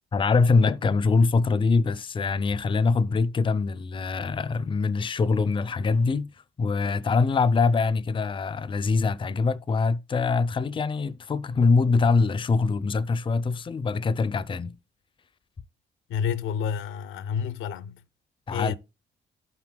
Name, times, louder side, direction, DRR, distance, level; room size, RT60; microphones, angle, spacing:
voice 1, 0.1-6.3 6.6-14.8 18.5-18.7, left 4 dB, 25° left, 0.5 m, -23 dB
voice 2, 16.1-18.0 18.5-18.7, left 7 dB, 80° left, 0.7 m, -29 dB
14.0 x 6.0 x 2.2 m
cardioid pair, 90°, 20 cm